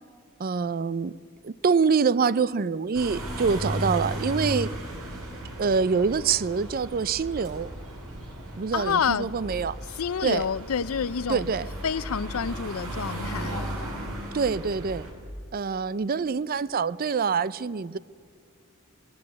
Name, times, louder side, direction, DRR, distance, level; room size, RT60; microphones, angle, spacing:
voice 1, 0.4-1.1 1.4-4.7 5.6-7.7 8.6-9.8 10.2-10.5 11.3-11.7 14.3-15.1 15.5-18.0, right 5 dB, 45° right, 0.5 m, -25 dB
sound 1, 2.9-15.1, right 1 dB, 90° right, 5.6 m, -35 dB
voice 2, 8.7-9.3 9.9-11.5 11.8-13.7, left 7 dB, 80° left, 0.5 m, -28 dB
19.0 x 16.5 x 9.6 m
head